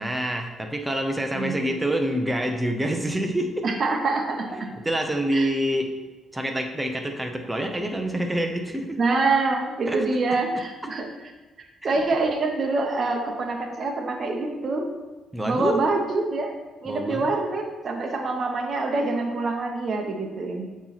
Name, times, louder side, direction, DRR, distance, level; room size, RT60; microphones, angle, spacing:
voice 1, 0.0-3.6 4.8-5.9 6.3-9.0 9.9-10.0 11.9-12.0 15.3-15.8 16.9-17.2, right 1 dB, 10° right, 4 dB, 0.8 m, -26 dB
voice 2, 1.3-1.7 3.6-4.7 5.3-5.5 9.0-11.1 11.8-14.9 15.4-16.5 16.8-20.7, right 3 dB, 50° right, 2 dB, 0.9 m, -25 dB
7.9 x 3.1 x 4.1 m, 1.2 s
cardioid pair, 90°, 0 cm